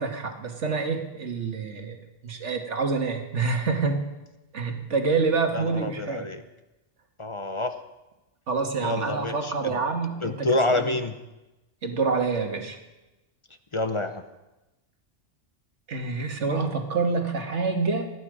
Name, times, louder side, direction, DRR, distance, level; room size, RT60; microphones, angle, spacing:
voice 1, 0.0-4.1 4.5-6.3 8.5-10.9 11.8-12.8 15.9-18.1, right 4 dB, 75° right, 4 dB, 1.9 m, -27 dB
voice 2, 5.5-6.4 7.2-7.7 8.8-9.8 10.2-11.2 13.7-14.2, left 2 dB, 30° left, 8 dB, 0.7 m, -27 dB
18.0 x 11.5 x 4.9 m, 1.0 s
omnidirectional pair, 1.2 m